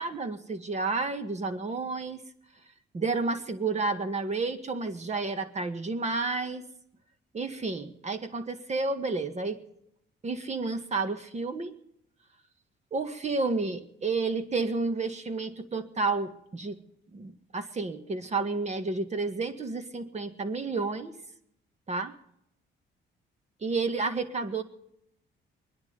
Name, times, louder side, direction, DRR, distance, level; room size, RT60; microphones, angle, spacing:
voice 1, 0.0-2.2 2.9-6.6 7.3-9.6 10.2-11.7 12.9-16.8 17.1-21.1 21.9-22.2 23.6-24.6, right 3 dB, 35° right, 7 dB, 1.8 m, -31 dB
23.0 x 10.5 x 5.2 m, 0.73 s
cardioid pair, 90°, 20 cm